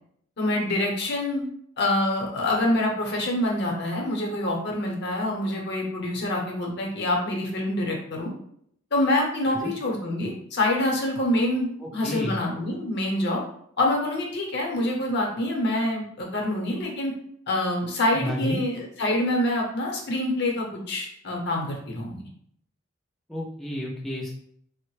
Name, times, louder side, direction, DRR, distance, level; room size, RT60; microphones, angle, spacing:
voice 1, 0.4-1.5 1.8-8.3 8.9-13.4 13.8-17.1 17.5-22.2, left 1 dB, 55° left, 0 dB, 0.8 m, -26 dB
voice 2, 11.8-12.4 18.1-18.6 23.3-24.4, equal, ahead, -4 dB, 0.3 m, -31 dB
3.4 x 2.1 x 3.1 m, 0.69 s
head